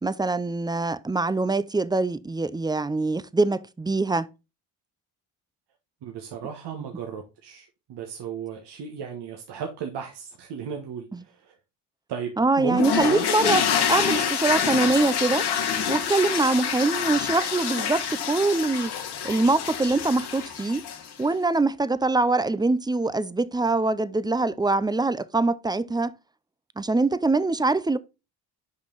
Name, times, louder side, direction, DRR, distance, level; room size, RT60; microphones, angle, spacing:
voice 1, 0.0-4.3 11.1-11.2 12.4-15.5 15.9-18.9 19.2-20.8 21.2-26.1 26.8-28.0, right 3 dB, 10° right, 0.4 m, -23 dB
voice 2, 6.0-11.5 12.1-13.3, right 7 dB, 70° right, 1.3 m, -35 dB
sound 1, 12.8-21.2, left 7 dB, 65° left, 1.5 m, -27 dB
6.4 x 5.3 x 3.9 m
supercardioid pair, 70°, 42 cm